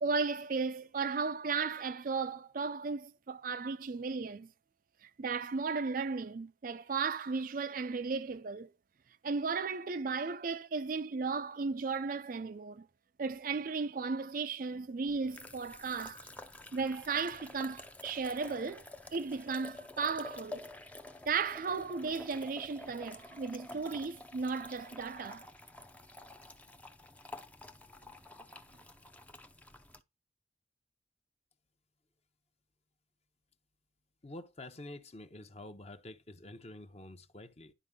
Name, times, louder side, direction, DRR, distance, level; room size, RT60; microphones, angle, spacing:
voice 1, 0.0-4.5 5.0-8.7 9.2-12.9 13.2-16.3 16.7-18.8 19.1-20.7 21.3-25.5, right 4 dB, 45° right, 0.4 m, -35 dB
sound 1, 15.1-30.0, left 2 dB, 10° left, 0.5 m, -50 dB
voice 2, 34.2-37.7, left 1 dB, 35° left, 0.8 m, -48 dB
11.0 x 4.7 x 3.6 m
head